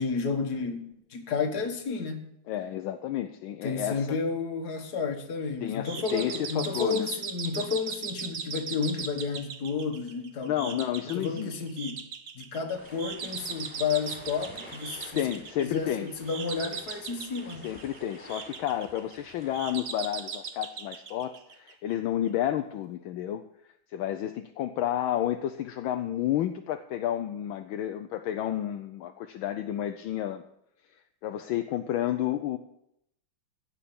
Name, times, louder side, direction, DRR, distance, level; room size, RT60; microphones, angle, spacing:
voice 1, 0.0-2.3 3.6-10.8 11.1-12.0 12.3-15.2 15.6-17.7, left 5 dB, 50° left, 1.9 m, -31 dB
voice 2, 2.5-4.2 5.6-7.1 10.4-11.5 15.1-16.1 17.6-23.4 23.9-30.4 31.2-32.6, left 11 dB, 75° left, 1.4 m, -31 dB
sound 1, 5.8-21.9, right 6 dB, 55° right, 0.8 m, -39 dB
sound 2, 12.7-19.8, equal, 5° left, 3.9 m, -50 dB
16.0 x 5.7 x 8.6 m
omnidirectional pair, 2.3 m